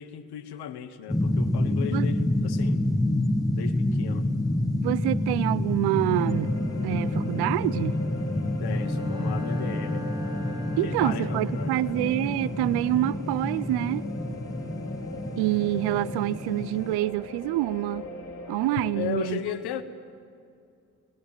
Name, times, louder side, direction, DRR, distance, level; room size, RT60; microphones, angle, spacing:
voice 1, 0.0-2.8 3.5-4.3 8.6-10.1 10.7-12.0 19.0-19.8, left 10 dB, 75° left, 1.3 m, -36 dB
sound 1, 1.1-16.9, left 1 dB, 10° left, 1.8 m, -28 dB
voice 2, 4.8-6.6 6.8-8.0 10.8-14.0 15.4-18.1 18.5-19.4, right 16 dB, 85° right, 0.6 m, -26 dB
sound 2, 6.1-19.1, left 2 dB, 45° left, 4.1 m, -41 dB
Bowed string instrument, 8.6-11.8, equal, 10° right, 2.6 m, -40 dB
25.0 x 19.0 x 9.0 m
hypercardioid pair, 40°, 39 cm